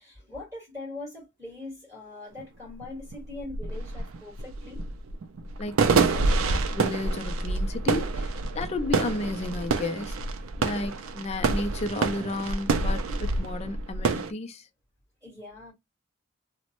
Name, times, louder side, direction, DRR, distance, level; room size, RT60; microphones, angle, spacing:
voice 1, 0.0-4.8 15.2-15.7, left 2 dB, 15° right, 1.8 m, -41 dB
sound 1, 2.4-2.5 2.8-14.3, right 3 dB, 80° right, 0.4 m, -27 dB
voice 2, 5.6-10.2 10.6-14.7, left 2 dB, 30° left, 0.3 m, -33 dB
3.0 x 2.1 x 2.9 m
head